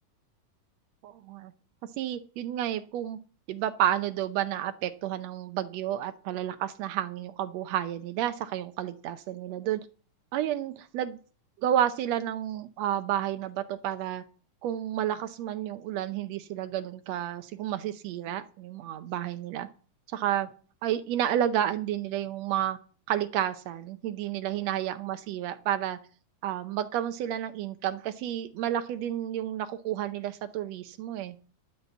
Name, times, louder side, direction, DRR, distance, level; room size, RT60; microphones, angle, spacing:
voice 1, 1.0-1.5 2.0-3.2 3.5-9.8 10.3-11.2 11.6-14.2 14.6-19.7 20.1-20.5 20.8-22.8 23.1-26.0 26.4-31.3, right 11 dB, 85° right, 10 dB, 1.5 m, -31 dB
11.0 x 6.7 x 8.0 m, 0.41 s
omnidirectional pair, 3.9 m